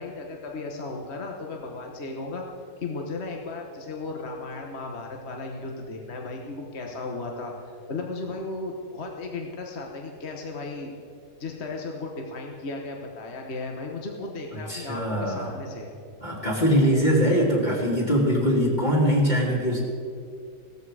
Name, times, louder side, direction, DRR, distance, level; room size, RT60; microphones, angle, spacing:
voice 1, 0.0-2.4 2.8-10.9 11.4-15.9, left 3 dB, 45° left, 1 dB, 1.4 m, -35 dB
voice 2, 14.7-15.5 16.2-19.8, equal, 25° left, -5 dB, 2.5 m, -22 dB
16.5 x 14.0 x 4.9 m, 2.4 s
omnidirectional pair, 1.8 m